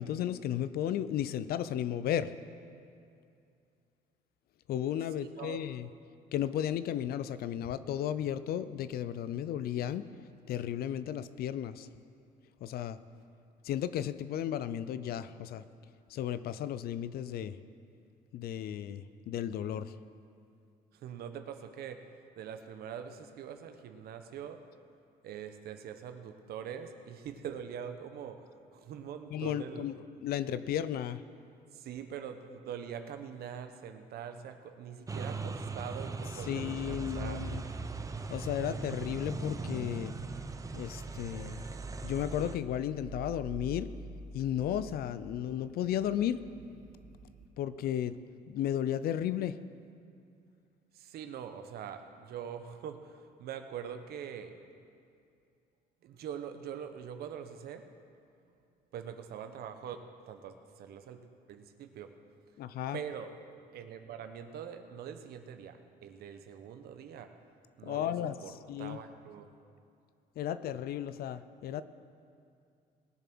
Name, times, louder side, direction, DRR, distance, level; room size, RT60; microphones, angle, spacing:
voice 1, 0.0-2.3 4.7-5.9 6.3-10.1 10.5-11.9 12.6-13.0 13.6-15.6 16.1-17.6 18.3-20.0 29.3-29.9 30.2-31.2 36.4-37.6 38.3-40.2 40.7-41.7 42.0-43.9 44.3-46.4 47.6-48.2 48.5-49.6 62.6-63.0 67.8-69.0 70.4-71.8, left 10 dB, 65° left, 15 dB, 0.5 m, -34 dB
voice 2, 5.2-5.6 20.9-22.1 22.4-24.6 25.2-29.9 31.7-37.4 50.9-54.6 56.0-57.9 58.9-62.1 62.9-63.3 63.7-67.3 67.8-68.1 68.4-68.5 68.8-69.5, right 8 dB, 70° right, 8 dB, 0.9 m, -43 dB
sound 1, 35.1-42.6, right 4 dB, 20° right, 0.7 m, -39 dB
sound 2, 36.4-47.5, right 3 dB, 45° right, 1.4 m, -48 dB
19.5 x 7.2 x 6.0 m, 2.5 s
cardioid pair, 110°, 17 cm